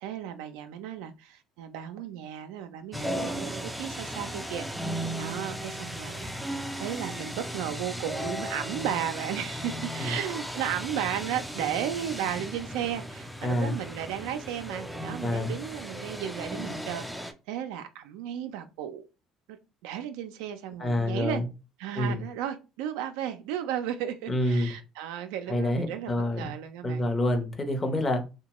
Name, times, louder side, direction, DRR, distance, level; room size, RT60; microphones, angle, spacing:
voice 1, 0.0-19.0 19.5-19.6 19.8-21.4 21.8-27.1, right 10 dB, 90° right, 0.3 m, -34 dB
sound 1, 2.9-17.3, equal, ahead, 0.4 m, -36 dB
voice 2, 13.4-13.8 15.2-15.5 20.8-21.5 21.9-22.2 24.3-24.7 25.5-26.5 26.8-28.2, left 1 dB, 25° left, 0.7 m, -27 dB
2.9 x 2.1 x 2.9 m
cardioid pair, 100°, 0 cm